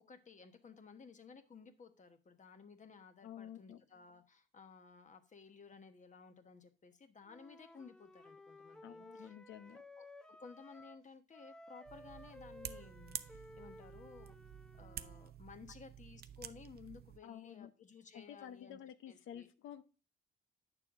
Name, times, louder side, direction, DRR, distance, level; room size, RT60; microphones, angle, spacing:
voice 1, 0.1-9.3 10.0-10.1 10.4-14.4 14.7-18.8 19.1-19.5, left 5 dB, 40° left, 7 dB, 1.2 m, -56 dB
voice 2, 3.2-3.8 8.8-9.8 17.2-17.7 18.1-19.8, left 10 dB, 80° left, 10 dB, 0.8 m, -51 dB
Wind instrument woodwind instrument, 7.2-11.1 11.3-15.3, left 1 dB, 5° left, 0.6 m, -57 dB
sound 1, 11.9-17.2, right 9 dB, 50° right, 0.6 m, -50 dB
8.7 x 6.8 x 3.6 m, 0.32 s
cardioid pair, 90°, 20 cm